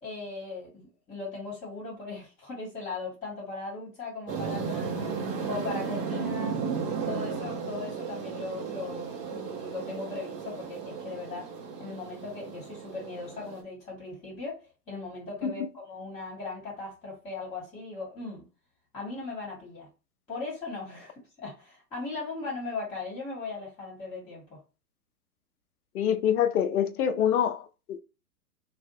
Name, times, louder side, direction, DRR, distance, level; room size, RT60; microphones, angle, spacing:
voice 1, 0.0-6.6 7.0-11.5 11.8-18.4 18.9-19.9 20.3-24.6, left 3 dB, 15° left, 1.4 m, -38 dB
sound 1, 4.3-13.6, right 6 dB, 30° right, 0.9 m, -35 dB
voice 2, 25.9-28.0, left 9 dB, 65° left, 0.6 m, -25 dB
2.6 x 2.3 x 2.7 m
hypercardioid pair, 115°, 48 cm